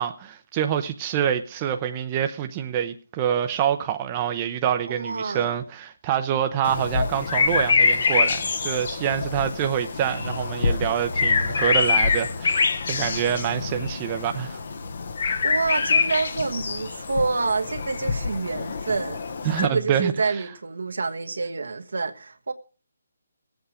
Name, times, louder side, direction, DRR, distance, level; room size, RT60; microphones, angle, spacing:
voice 1, 0.0-14.6 19.4-20.1, right 9 dB, 25° right, 0.7 m, -26 dB
voice 2, 4.9-5.5 15.4-19.2 19.6-22.5, right 4 dB, 80° right, 1.3 m, -27 dB
sound 1, 6.6-19.7, left 4 dB, 55° left, 1.1 m, -25 dB
19.5 x 8.2 x 4.9 m
hypercardioid pair, 165°, 0 cm